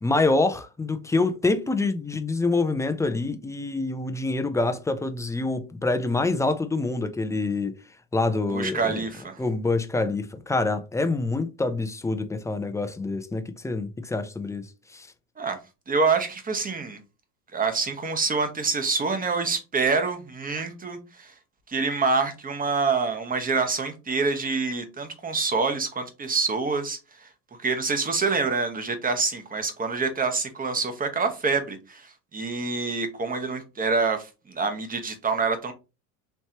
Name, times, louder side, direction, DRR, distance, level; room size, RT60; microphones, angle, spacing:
voice 1, 0.0-7.8 8.1-9.0 9.4-15.1, left 3 dB, 10° left, 0.5 m, -26 dB
voice 2, 8.5-9.4 15.4-15.6 15.9-17.0 17.5-21.3 21.7-27.3 27.6-35.7, right 4 dB, 20° right, 1.1 m, -26 dB
4.4 x 3.2 x 2.9 m
supercardioid pair, 95°, 41 cm